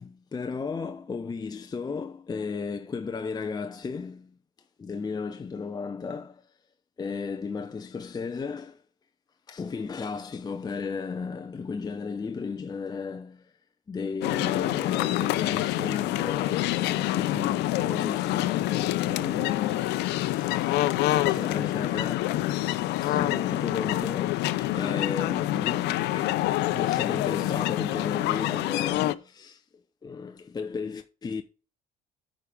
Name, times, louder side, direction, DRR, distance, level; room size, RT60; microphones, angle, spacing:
voice 1, 0.0-4.3 4.8-6.5 7.0-8.8 9.5-13.5 13.9-20.7 21.2-22.4 23.0-26.5 26.7-29.6 30.0-31.4, left 5 dB, 25° left, 0.7 m, -34 dB
sound 1, 14.2-29.1, left 15 dB, 85° left, 0.6 m, -27 dB
9.3 x 5.0 x 5.3 m
cardioid pair, 110°, 17 cm